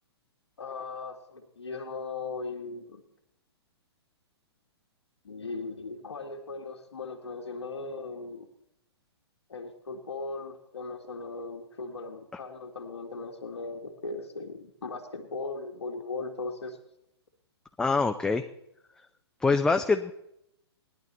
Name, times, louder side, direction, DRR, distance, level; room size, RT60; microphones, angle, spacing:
voice 1, 0.6-3.0 5.2-8.5 9.5-16.8, left 3 dB, 75° left, 1 dB, 2.0 m, -38 dB
voice 2, 17.8-18.5 19.4-20.1, left 4 dB, 5° left, 6 dB, 0.5 m, -24 dB
18.5 x 11.0 x 4.1 m, 0.79 s
figure-of-eight pair, 120°, 14 cm